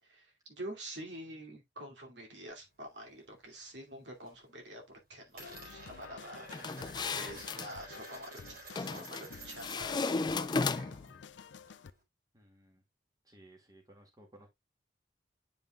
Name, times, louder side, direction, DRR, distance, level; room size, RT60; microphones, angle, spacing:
voice 1, 0.0-6.5 6.8-11.1, right 1 dB, 75° right, 2.6 m, -47 dB
Coin (dropping), 2.5-3.7 4.0-4.5 4.7-10.0 10.3-12.0, right 2 dB, 55° right, 4.7 m, -52 dB
sound 1, 5.4-11.9, left 6 dB, 85° left, 0.4 m, -52 dB
sound 2, 6.5-7.7 8.8-9.3 9.6-11.1, left 4 dB, 25° left, 0.4 m, -34 dB
voice 2, 12.3-12.8 13.2-14.5, right 1 dB, 20° right, 2.3 m, -58 dB
9.1 x 5.4 x 2.4 m
head